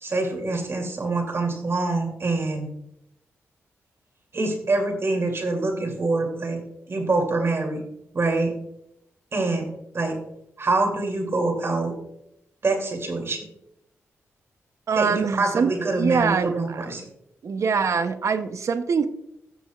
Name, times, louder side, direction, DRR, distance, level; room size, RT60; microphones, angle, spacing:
voice 1, 0.0-2.7 4.3-6.6 6.9-7.8 8.1-8.5 9.3-9.7 9.9-10.2 10.6-11.9 12.6-13.4 14.9-17.1, right 3 dB, 50° right, 2 dB, 2.8 m, -25 dB
voice 2, 14.9-16.9 17.4-19.1, right 5 dB, 65° right, 10 dB, 0.8 m, -24 dB
14.5 x 7.0 x 2.4 m, 0.80 s
cardioid pair, 55°, 5 cm